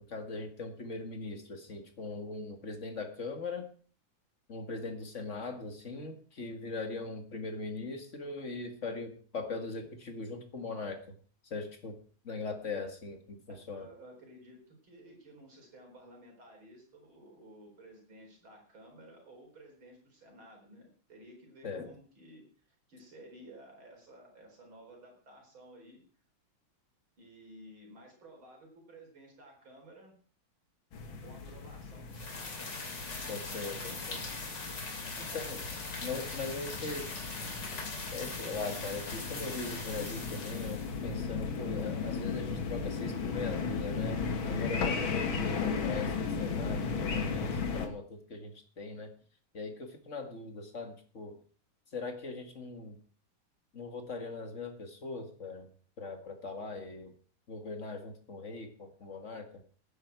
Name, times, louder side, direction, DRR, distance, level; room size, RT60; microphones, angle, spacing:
voice 1, 0.0-3.7 4.5-11.1 11.4-12.0 12.2-13.9 21.6-21.9 33.3-34.2 35.3-35.6 36.0-37.1 38.1-46.1 46.4-49.1 49.5-51.4 51.9-53.0 53.7-55.7 56.0-57.1 57.5-59.6, left 3 dB, 40° left, 5 dB, 2.1 m, -40 dB
voice 2, 13.7-22.5 22.9-26.0 27.2-30.2 31.2-32.6 33.6-34.5 35.2-35.4, right 1 dB, 80° right, 1 dB, 5.0 m, -54 dB
sound 1, 30.9-47.9, left 5 dB, 80° left, 2.3 m, -36 dB
sound 2, 32.1-41.1, left 3 dB, 60° left, 3.4 m, -41 dB
17.0 x 9.6 x 4.7 m, 0.43 s
omnidirectional pair, 2.2 m